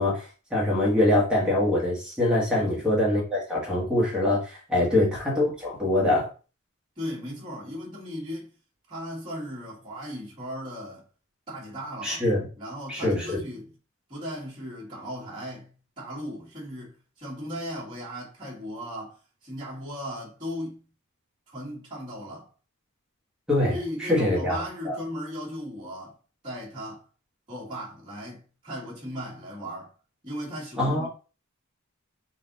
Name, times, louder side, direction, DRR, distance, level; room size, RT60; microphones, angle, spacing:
voice 1, 0.0-6.3 12.0-12.5 12.9-13.4 23.5-25.0 30.8-31.1, left 1 dB, 5° right, 1.5 m, -24 dB
voice 2, 2.5-2.8 4.7-5.0 7.0-8.5 8.9-11.0 11.5-12.3 12.6-13.7 14.1-15.7 16.0-20.8 21.5-22.5 23.7-26.2 26.4-27.0 27.5-29.9 30.2-31.1, equal, 20° right, 2.0 m, -37 dB
4.0 x 2.7 x 4.0 m
head